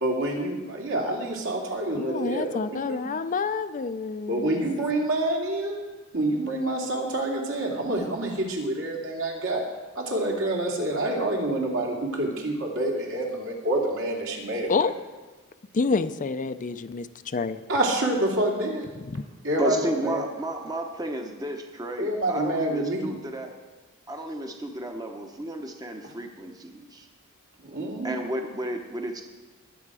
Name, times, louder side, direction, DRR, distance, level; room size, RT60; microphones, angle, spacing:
voice 1, 0.0-2.6 2.9-3.0 4.3-5.8 6.1-9.6 10.0-14.7 17.7-18.9 19.4-20.2 22.0-23.1 26.0-26.1 27.6-28.1, right 1 dB, 65° right, -1 dB, 2.6 m, -27 dB
voice 2, 1.9-4.6 14.7-14.9 15.7-17.6 19.1-19.2, left 4 dB, 35° left, 11 dB, 0.5 m, -28 dB
voice 3, 19.6-23.6 24.1-27.1 28.0-29.2, right 1 dB, 15° right, 3 dB, 0.9 m, -32 dB
21.0 x 7.8 x 4.9 m, 1.3 s
head